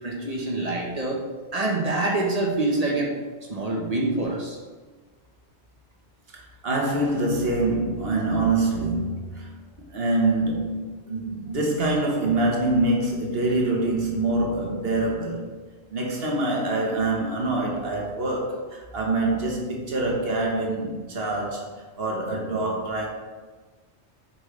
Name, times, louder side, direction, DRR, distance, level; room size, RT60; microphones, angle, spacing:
voice 1, 0.0-1.2 1.5-3.1 3.5-4.6, right 2 dB, 35° right, -2 dB, 1.2 m, -25 dB
voice 2, 6.3-15.5 15.9-21.7 22.0-23.1, right 2 dB, 55° right, -1 dB, 1.4 m, -25 dB
7.7 x 5.4 x 3.2 m, 1.3 s
omnidirectional pair, 1.2 m